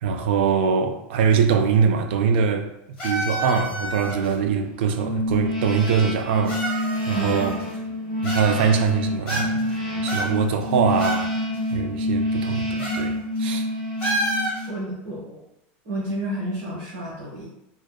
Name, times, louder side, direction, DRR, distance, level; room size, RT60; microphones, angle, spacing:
voice 1, 0.0-2.7 3.0-7.5 8.2-9.6 10.0-11.3 11.7-13.7, right 6 dB, 80° right, 6 dB, 0.3 m, -23 dB
sound 1, 3.0-4.3 5.3-5.4 6.5-7.8 8.2-8.9 9.3-9.7 10.1-11.3 11.5-11.6 12.8-13.1 13.4-13.5 14.0-14.7, right 1 dB, 20° left, 1.2 m, -29 dB
sound 2, 5.0-14.9, left 1 dB, 5° right, 0.5 m, -27 dB
voice 2, 7.1-7.6 7.9-8.0 14.7-15.4 15.8-17.4, right 1 dB, 55° right, -9 dB, 1.1 m, -30 dB
2.6 x 2.3 x 2.2 m, 0.82 s
supercardioid pair, 175°, 6 cm